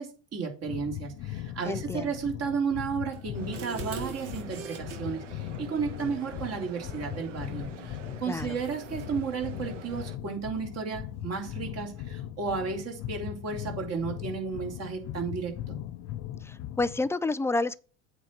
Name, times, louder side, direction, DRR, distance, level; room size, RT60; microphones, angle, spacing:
voice 1, 0.0-15.8, right 5 dB, 45° right, 3.2 m, -33 dB
sound 1, 0.7-17.1, left 12 dB, 45° left, 0.7 m, -39 dB
voice 2, 1.6-2.1 8.3-8.5 16.4-17.8, left 3 dB, 10° left, 0.3 m, -29 dB
sound 2, 3.1-5.0 7.6-7.9 8.4-9.1, right 7 dB, 65° right, 2.5 m, -42 dB
sound 3, 3.3-10.2, right 7 dB, 85° right, 0.9 m, -47 dB
8.0 x 4.6 x 5.8 m
hypercardioid pair, 75°, 36 cm